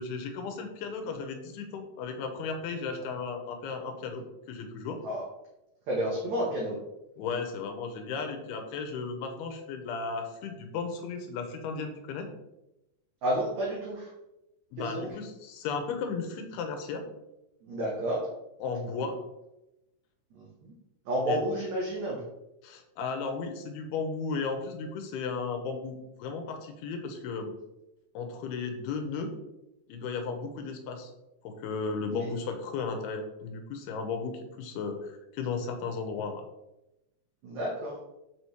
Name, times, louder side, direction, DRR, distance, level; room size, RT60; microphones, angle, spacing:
voice 1, 0.0-5.0 7.2-12.3 14.7-17.0 18.6-19.2 21.3-21.4 22.6-27.5 28.1-29.3 29.9-31.1 31.4-36.4, left 4 dB, 80° left, 5 dB, 2.7 m, -35 dB
voice 2, 5.9-6.8 13.2-14.1 14.8-15.1 17.6-18.2 20.3-20.7 21.1-22.2 32.1-32.3 37.4-37.9, equal, 70° right, -3 dB, 1.8 m, -30 dB
6.1 x 5.6 x 3.1 m, 0.93 s
omnidirectional pair, 4.6 m